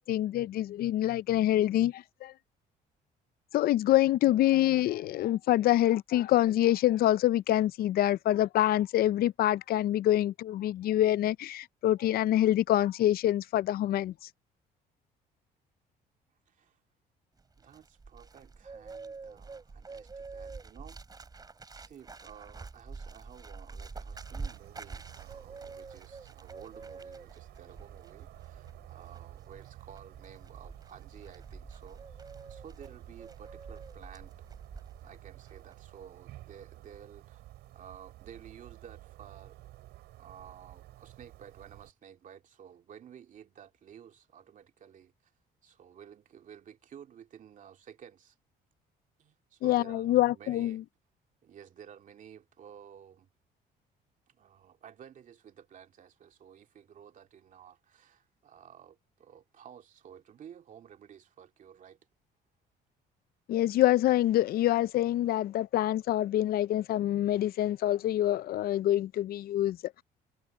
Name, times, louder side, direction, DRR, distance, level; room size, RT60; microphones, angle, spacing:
voice 1, 0.0-2.3 3.5-14.3 49.6-50.8 63.5-70.0, left 13 dB, 65° left, 0.5 m, -26 dB
voice 2, 16.5-16.8 17.6-21.3 21.8-32.1 32.5-34.3 35.0-37.4 37.7-39.6 40.2-45.3 45.6-48.4 49.2-50.8 51.4-53.3 54.3-62.0, right 8 dB, 50° right, 2.5 m, -53 dB
Bird, 17.4-35.2 35.5-35.8, right 4 dB, 25° right, 4.6 m, -47 dB
sound 1, 24.1-41.9, right 16 dB, 80° right, 5.5 m, -52 dB
cardioid pair, 110°, 17 cm